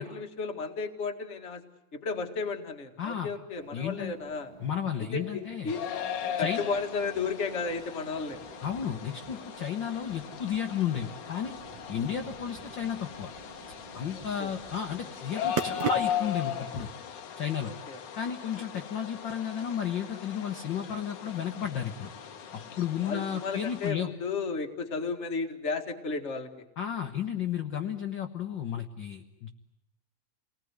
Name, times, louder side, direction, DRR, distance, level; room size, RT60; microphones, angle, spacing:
voice 1, 0.0-1.6 1.9-4.5 5.0-5.8 6.4-8.4 11.9-12.0 14.1-14.5 17.6-18.0 18.5-18.8 23.0-26.5, left 4 dB, 30° left, 5 dB, 1.7 m, -34 dB
voice 2, 3.0-3.3 3.7-4.1 4.6-5.7 6.4-6.6 8.6-11.5 11.9-13.3 13.9-16.9 17.4-17.7 18.2-22.1 22.5-24.1 26.8-29.5, left 8 dB, 50° left, 4 dB, 1.6 m, -33 dB
sound 1, 3.6-16.4, right 7 dB, 65° right, 2.6 m, -43 dB
sound 2, 5.7-23.9, left 9 dB, 90° left, 3.1 m, -38 dB
29.0 x 20.0 x 9.6 m, 0.91 s
omnidirectional pair, 3.3 m